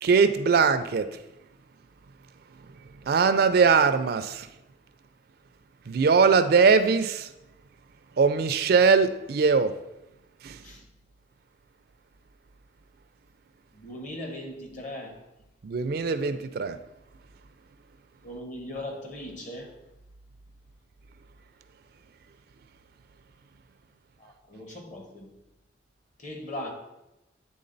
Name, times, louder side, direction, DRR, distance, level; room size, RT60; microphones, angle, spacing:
voice 1, 0.0-1.2 3.1-4.5 5.9-7.3 8.2-9.7 10.4-10.6 15.6-16.8, right 5 dB, 55° right, 11 dB, 0.4 m, -21 dB
voice 2, 13.7-15.2 18.2-19.7 24.2-25.3 26.2-26.7, left 1 dB, 45° left, 2 dB, 1.2 m, -38 dB
8.6 x 3.6 x 3.9 m, 0.91 s
head